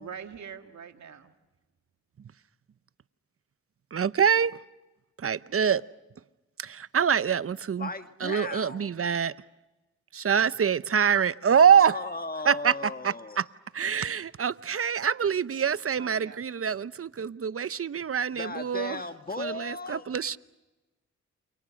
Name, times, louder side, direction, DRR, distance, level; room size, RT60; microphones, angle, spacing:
voice 1, 0.0-1.3 16.0-16.4, right 7 dB, 65° right, 2.0 m, -43 dB
voice 2, 3.9-4.6 5.2-5.8 6.6-7.9 8.2-9.3 10.1-11.9 12.5-12.7 13.0-13.4 13.7-19.0 19.4-20.4, right 7 dB, 50° right, 0.8 m, -25 dB
voice 3, 7.8-8.9 11.7-13.4 18.3-20.1, left 3 dB, 30° left, 1.6 m, -36 dB
29.0 x 28.5 x 6.4 m
cardioid pair, 55°, 30 cm